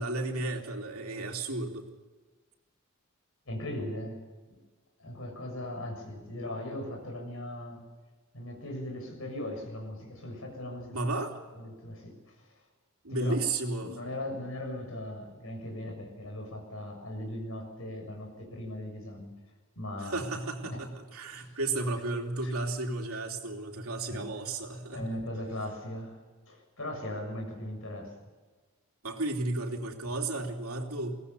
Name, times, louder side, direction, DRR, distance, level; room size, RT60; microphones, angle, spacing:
voice 1, 0.0-1.9 10.9-11.4 13.0-14.0 20.0-25.2 29.0-31.2, right 2 dB, 90° right, 2 dB, 3.0 m, -33 dB
voice 2, 3.5-4.2 5.0-7.9 8.3-11.1 11.5-12.4 13.1-13.3 13.8-19.3 19.8-20.2 20.7-20.8 21.3-21.6 22.4-22.5 24.1-24.3 24.9-26.2 26.5-28.1, left 1 dB, 75° left, 2 dB, 6.9 m, -39 dB
22.5 x 18.5 x 6.9 m, 1.3 s
head